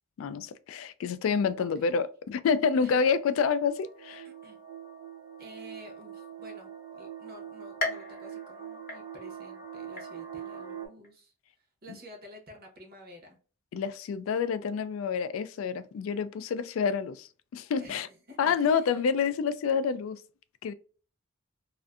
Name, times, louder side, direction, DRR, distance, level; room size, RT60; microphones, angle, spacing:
voice 1, 0.2-4.3 13.7-18.1 18.4-20.2 20.6-20.7, left 6 dB, 80° left, 0.3 m, -28 dB
voice 2, 1.6-1.9 2.8-3.0 4.2-4.6 5.4-11.3 11.8-13.4 17.8-19.0, left 1 dB, 50° right, 0.8 m, -50 dB
sound 1, 3.7-10.9, right 8 dB, 20° right, 0.7 m, -43 dB
sound 2, 7.8-9.5 10.0-10.5 11.0-11.1 12.1-12.2, left 2 dB, 45° left, 0.7 m, -37 dB
2.5 x 2.4 x 2.3 m
head